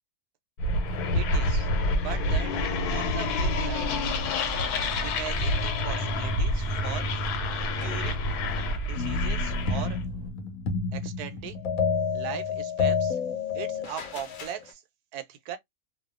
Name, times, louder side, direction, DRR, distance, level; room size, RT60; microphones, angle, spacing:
sound 1, 0.6-10.0, left 1 dB, 90° left, 1.2 m, -28 dB
voice 1, 1.1-2.6 2.9-3.9 5.0-7.1 7.8-8.2 8.9-10.0 10.9-11.6 12.1-13.2 13.5-14.8 15.1-15.6, right 10 dB, 85° right, 1.1 m, -39 dB
sound 2, 3.6-10.3, right 1 dB, 50° right, 0.7 m, -40 dB
sound 3, 9.0-14.6, left 5 dB, 65° left, 0.9 m, -29 dB
2.6 x 2.2 x 2.4 m
omnidirectional pair, 1.6 m